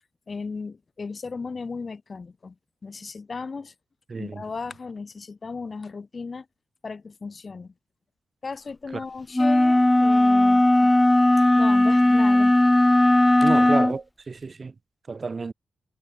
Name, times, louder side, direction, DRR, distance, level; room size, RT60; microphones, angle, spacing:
voice 1, 0.3-2.6 2.8-3.7 4.2-6.5 6.8-7.7 8.4-10.9 11.6-12.5 13.4-13.5, left 4 dB, 40° left, 2.2 m, -36 dB
voice 2, 4.1-4.4 13.4-14.7 15.1-15.5, right 4 dB, 40° right, 1.1 m, -30 dB
sound 1, 9.3-14.0, left 1 dB, 10° left, 0.4 m, -17 dB
cardioid pair, 85°, 0 cm